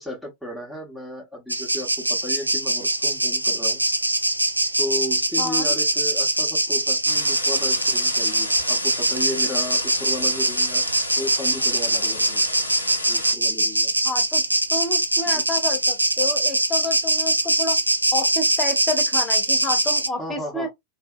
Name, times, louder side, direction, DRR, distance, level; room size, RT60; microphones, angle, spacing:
voice 1, 0.0-3.8 4.8-10.8 11.2-12.4 13.1-13.9 15.3-15.6 20.2-20.7, left 1 dB, ahead, 1.0 m, -34 dB
sound 1, 1.5-20.1, right 1 dB, 85° right, 0.3 m, -22 dB
voice 2, 5.4-5.7 14.0-14.4 14.7-17.8 18.1-20.7, left 2 dB, 20° left, 1.1 m, -29 dB
sound 2, 7.0-13.3, left 2 dB, 80° left, 0.7 m, -33 dB
2.7 x 2.6 x 2.3 m
figure-of-eight pair, 90°, 0 cm